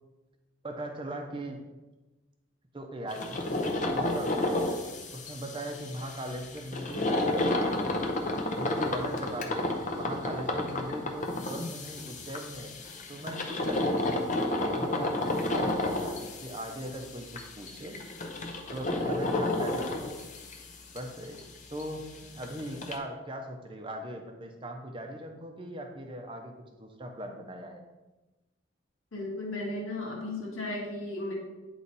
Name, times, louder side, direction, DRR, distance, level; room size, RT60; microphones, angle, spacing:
voice 1, 0.6-1.6 2.7-4.8 5.1-7.8 8.5-9.7 10.0-12.7 13.1-18.0 18.7-20.2 20.9-21.4 21.7-26.5 26.8-27.8, right 1 dB, 25° right, 4 dB, 0.7 m, -39 dB
sound 1, 3.1-21.0 21.2-21.4 21.8-21.9 22.2-22.3 22.4-23.0, left 2 dB, 35° left, 0.7 m, -31 dB
voice 2, 29.1-31.3, left 2 dB, 75° left, -3 dB, 1.6 m, -35 dB
9.4 x 3.2 x 4.0 m, 1.1 s
head